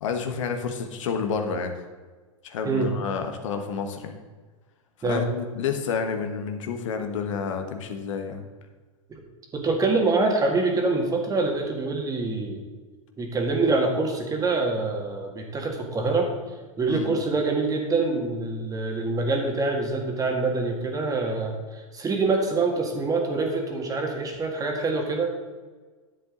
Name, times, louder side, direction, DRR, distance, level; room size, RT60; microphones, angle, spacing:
voice 1, 0.0-1.8 2.4-4.2 5.0-8.4 16.9-17.1, left 6 dB, 70° left, 5 dB, 1.3 m, -29 dB
voice 2, 9.5-12.6 13.2-16.3 16.8-25.3, right 3 dB, 20° right, 2 dB, 2.0 m, -25 dB
10.5 x 7.6 x 3.9 m, 1.4 s
hypercardioid pair, 105°, 17 cm